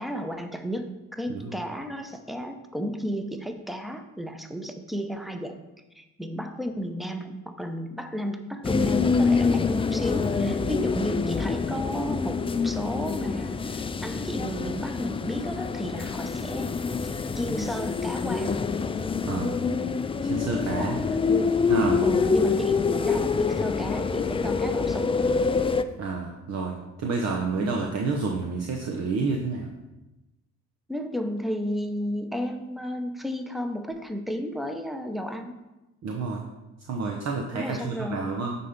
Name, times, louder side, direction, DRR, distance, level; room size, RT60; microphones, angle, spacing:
voice 1, 0.0-5.6 5.9-16.7 17.3-18.7 20.8-21.6 22.0-25.3 27.6-27.9 30.9-35.5 37.5-38.3, equal, ahead, 7 dB, 0.8 m, -33 dB
sound 1, 8.6-25.8, left 5 dB, 20° left, 0.4 m, -26 dB
voice 2, 19.3-19.6 20.2-21.0 21.7-22.0 26.0-29.7 36.0-36.4 36.9-38.6, right 4 dB, 60° right, 1 dB, 0.9 m, -29 dB
9.1 x 4.2 x 5.2 m, 1.0 s
cardioid pair, 90°, 30 cm